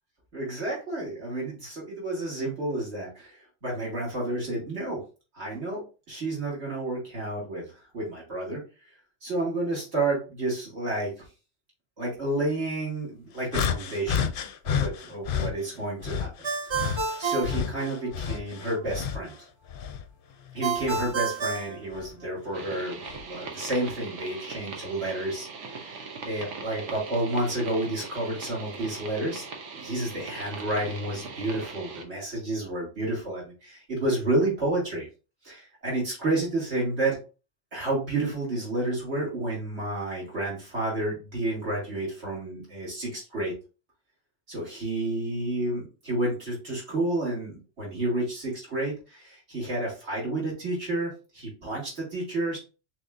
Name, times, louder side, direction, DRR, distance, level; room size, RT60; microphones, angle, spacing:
voice 1, 0.3-3.4 3.6-5.0 5.3-5.8 6.1-8.6 9.2-11.1 12.0-14.3 14.6-16.3 16.6-19.3 20.5-29.4 29.7-35.1 35.4-37.2 37.7-43.5 44.5-52.6, right 2 dB, 70° right, -5 dB, 2.9 m, -30 dB
sound 1, 13.5-15.5 16.0-19.3 19.7-21.2 21.9-22.1 23.0-23.2, left 7 dB, 60° left, 0.6 m, -30 dB
Ringtone, 16.4-18.4 20.6-22.6, right 5 dB, 45° right, 0.3 m, -30 dB
sound 2, 22.5-32.0, right 4 dB, 85° right, 1.2 m, -40 dB
6.2 x 3.2 x 2.6 m, 0.33 s
omnidirectional pair, 1.2 m